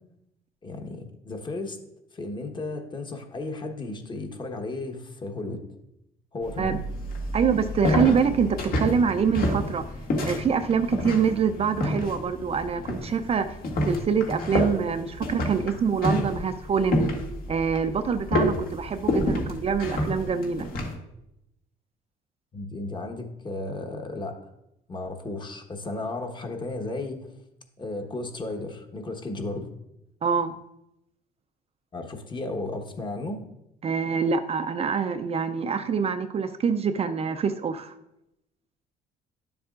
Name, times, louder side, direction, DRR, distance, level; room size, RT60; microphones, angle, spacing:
voice 1, 0.6-1.8 2.1-5.6 6.3-6.8 19.0-19.1 22.5-24.4 24.9-27.3 27.8-29.7 31.9-33.4, left 2 dB, 25° left, 4 dB, 1.2 m, -34 dB
sound 1, 6.4-20.9, left 1 dB, 60° left, 1.9 m, -29 dB
voice 2, 7.3-9.8 10.2-13.6 13.9-17.0 17.5-20.7 30.2-30.5 33.8-37.9, right 6 dB, 35° right, 9 dB, 0.5 m, -25 dB
11.0 x 7.1 x 2.5 m, 0.83 s
cardioid pair, 110°, 17 cm